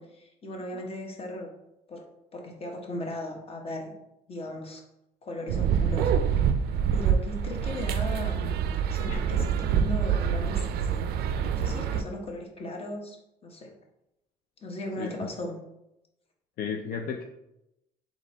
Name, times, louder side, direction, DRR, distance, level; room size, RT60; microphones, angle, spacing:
voice 1, 0.0-1.5 1.9-2.1 2.3-3.9 4.3-4.8 5.2-6.1 6.9-8.6 8.9-10.6 10.9-11.1 11.5-13.2 13.4-13.7 14.6-15.6, left 1 dB, 35° left, 1 dB, 1.0 m, -37 dB
sound 1, 5.5-12.0, right 7 dB, 70° right, 0.4 m, -26 dB
voice 2, 9.1-9.5 15.0-15.1 16.6-17.2, left 6 dB, 60° left, 3 dB, 0.4 m, -34 dB
4.0 x 3.1 x 3.9 m, 0.87 s
cardioid pair, 110°, 17 cm